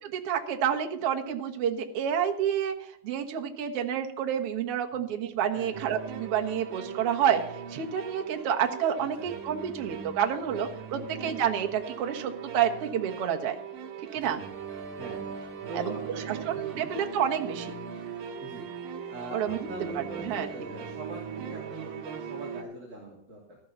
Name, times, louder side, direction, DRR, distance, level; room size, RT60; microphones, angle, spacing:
voice 1, 0.0-2.7 3.0-7.4 7.7-13.6 14.1-14.4 15.7-15.9 16.3-17.7 19.3-19.7 20.0-20.5, right 9 dB, 55° right, 2 dB, 1.9 m, -29 dB
sound 1, 5.7-22.6, right 7 dB, 75° right, 3.1 m, -40 dB
voice 2, 9.0-9.3 10.9-11.1 14.1-14.4 15.0-15.3 15.7-16.9 18.4-18.7 19.1-23.6, right 1 dB, 25° right, -4 dB, 2.9 m, -42 dB
13.5 x 13.0 x 4.0 m, 0.71 s
omnidirectional pair, 4.0 m